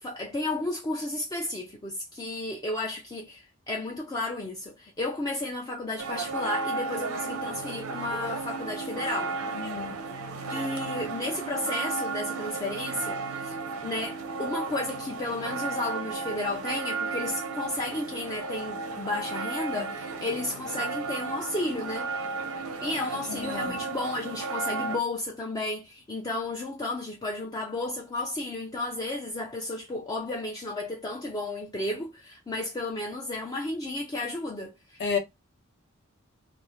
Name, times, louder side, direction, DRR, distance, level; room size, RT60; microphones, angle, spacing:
voice 1, 0.0-9.3 10.5-13.6 13.8-22.1 22.8-35.0, left 2 dB, 20° left, 0.3 m, -33 dB
sound 1, 6.0-25.0, right 4 dB, 80° right, 0.6 m, -34 dB
voice 2, 9.5-10.0 23.3-23.8 35.0-35.2, left 6 dB, 50° left, 0.7 m, -31 dB
2.5 x 2.0 x 2.9 m
head